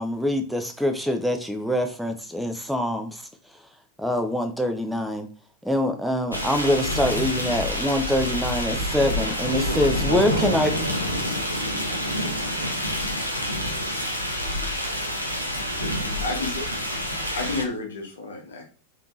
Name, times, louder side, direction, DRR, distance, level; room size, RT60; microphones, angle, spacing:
voice 1, 0.0-3.2 4.0-5.3 5.6-10.7, left 1 dB, ahead, 5 dB, 0.4 m, -24 dB
sound 1, 6.3-17.6, equal, 90° right, 0.6 m, -27 dB
voice 2, 9.5-12.2, equal, 85° left, 7 dB, 0.4 m, -36 dB
voice 3, 15.9-16.6 17.3-18.6, left 3 dB, 65° left, 1 dB, 0.8 m, -31 dB
3.4 x 2.8 x 2.3 m, 0.38 s
figure-of-eight pair, 90°, 0 cm